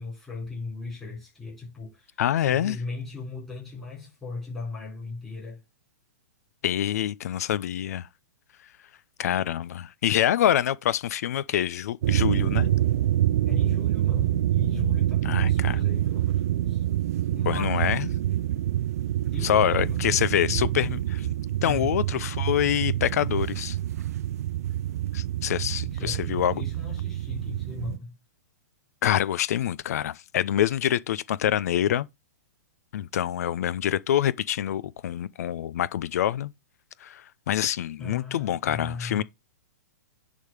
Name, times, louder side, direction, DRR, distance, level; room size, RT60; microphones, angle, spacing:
voice 1, 0.0-5.6 13.4-16.8 17.3-17.9 19.3-20.7 21.2-22.0 25.8-28.2 38.0-39.2, left 3 dB, 5° left, 4.6 m, -38 dB
voice 2, 2.2-2.8 6.6-8.1 9.2-12.7 15.2-15.8 17.5-18.1 19.4-21.3 21.6-23.8 25.1-26.6 29.0-32.1 32.9-36.5 37.0-39.2, left 11 dB, 65° left, 0.6 m, -26 dB
sound 1, 12.0-28.0, right 13 dB, 60° right, 0.5 m, -26 dB
10.5 x 3.7 x 4.8 m
hypercardioid pair, 145°, 9 cm